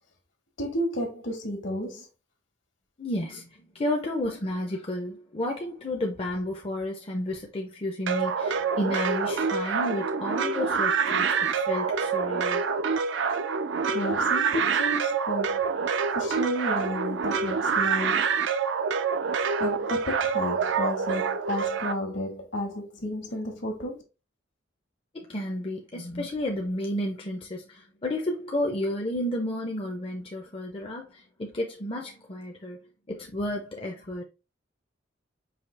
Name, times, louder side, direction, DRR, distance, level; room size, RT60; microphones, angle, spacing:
voice 1, 0.6-2.1 13.9-15.6 16.1-18.3 19.6-23.9, equal, 65° left, 1.4 m, -32 dB
voice 2, 3.0-3.5 3.7-11.3 11.7-12.7 25.1-32.8 33.1-34.2, left 1 dB, 30° left, 0.6 m, -31 dB
sound 1, 8.1-21.9, right 5 dB, 65° right, 0.4 m, -26 dB
4.9 x 2.8 x 3.2 m
head